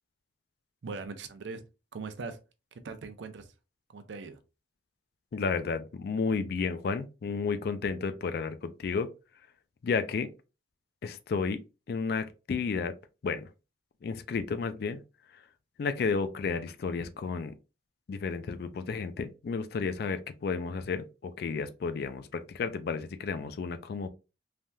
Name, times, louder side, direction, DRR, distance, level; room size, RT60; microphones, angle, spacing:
voice 1, 0.8-1.6 1.9-2.4 2.8-3.5 3.9-4.4, right 4 dB, 70° right, 0.5 m, -40 dB
voice 2, 5.3-9.1 9.8-10.3 11.0-11.6 11.9-13.0 13.2-13.5 14.0-15.0 15.3-15.4 15.8-17.5 18.1-24.1, left 5 dB, 55° left, 0.3 m, -32 dB
3.3 x 2.2 x 2.6 m
head